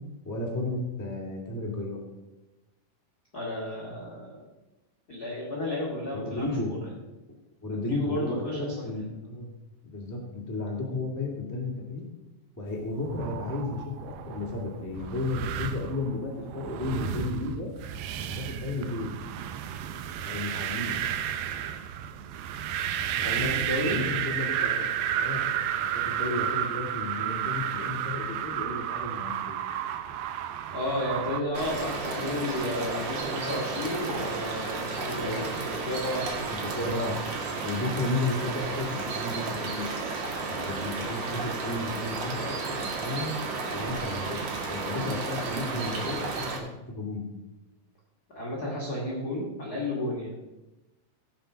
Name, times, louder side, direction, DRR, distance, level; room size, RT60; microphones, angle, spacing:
voice 1, 0.2-2.0 6.1-6.8 7.6-9.5 9.8-12.0 12.6-17.7 18.1-19.1 20.2-21.0 23.2-23.5 23.8-24.9 25.1-25.4 25.7-29.6 35.2-35.5 36.5-37.2 37.6-39.9 40.5-43.3 43.7-44.4 44.7-47.2, left 2 dB, 10° left, -2 dB, 0.9 m, -33 dB
voice 2, 3.3-4.4 5.1-6.8 7.6-8.7 23.1-24.0 30.7-36.5 48.3-50.3, left 1 dB, 30° left, -5 dB, 2.2 m, -32 dB
sound 1, 12.9-31.4, right 10 dB, 80° right, 2.2 m, -32 dB
sound 2, 31.5-46.6, right 4 dB, 55° right, 2.9 m, -33 dB
17.5 x 5.9 x 5.2 m, 1.0 s
omnidirectional pair, 4.8 m